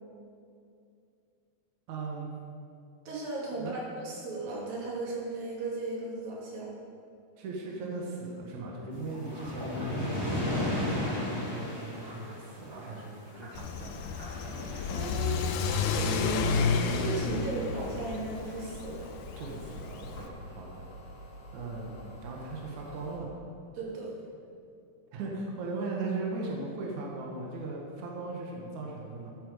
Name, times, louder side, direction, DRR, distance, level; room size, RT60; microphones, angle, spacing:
voice 1, 1.9-2.3 3.6-3.7 7.4-14.0 19.4-20.9 21.5-23.3 25.1-29.3, right 3 dB, 65° right, -2 dB, 2.8 m, -38 dB
voice 2, 3.1-6.7 14.9-15.6 15.9-19.1 23.7-24.1, right 2 dB, 85° right, -4 dB, 4.2 m, -36 dB
sound 1, 8.9-13.6 14.0-15.1, left 1 dB, 5° right, 2.9 m, -34 dB
Car / Accelerating revving vroom, 13.6-20.3, left 5 dB, 75° left, 2.2 m, -31 dB
sound 2, 16.4-23.2, equal, 40° left, 3.8 m, -48 dB
13.5 x 10.5 x 5.1 m, 2.4 s
omnidirectional pair, 3.9 m